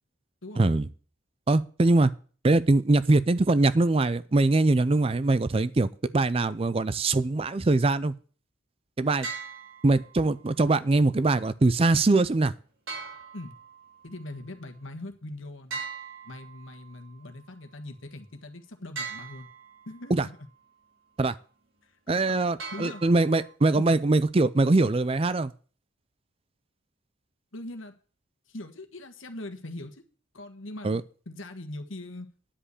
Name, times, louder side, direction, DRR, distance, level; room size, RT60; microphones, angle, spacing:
voice 1, 0.6-0.9 1.5-2.1 2.4-8.1 9.0-9.3 9.8-12.5 20.1-20.3 21.2-21.4 22.1-25.5 30.8-31.0, right 2 dB, 30° right, 16 dB, 0.4 m, -22 dB
sound 1, 9.2-10.2 12.9-14.0 15.7-16.9 19.0-19.9 22.6-23.5, right 5 dB, 75° right, 3.9 m, -39 dB
voice 2, 14.0-15.8 16.2-19.5 19.9-20.4 21.8-22.4 22.7-23.0 23.8-24.0 27.5-27.9 28.5-30.0 30.3-32.3, left 1 dB, 75° left, 6 dB, 1.5 m, -41 dB
10.0 x 5.3 x 8.3 m, 0.41 s
head